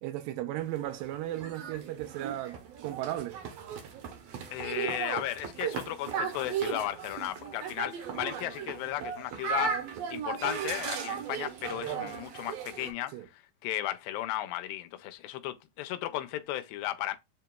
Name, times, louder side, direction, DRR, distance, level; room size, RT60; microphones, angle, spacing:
voice 1, 0.0-3.4 13.1-13.3, right 14 dB, 85° right, 2.3 m, -36 dB
sound 1, 0.6-12.9, right 7 dB, 70° right, 1.6 m, -36 dB
voice 2, 4.5-13.1 13.6-17.2, left 14 dB, 85° left, 2.3 m, -35 dB
7.4 x 2.9 x 2.2 m
omnidirectional pair, 4.0 m